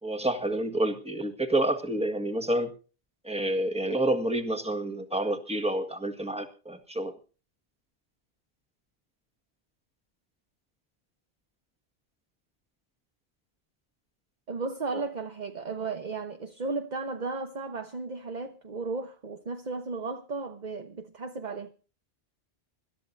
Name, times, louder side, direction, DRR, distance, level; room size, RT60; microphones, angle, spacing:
voice 1, 0.0-2.7 3.2-7.1 14.9-15.0, right 1 dB, 5° right, 1.8 m, -28 dB
voice 2, 14.5-21.7, right 3 dB, 45° right, 1.2 m, -35 dB
25.5 x 13.0 x 2.7 m
omnidirectional pair, 1.1 m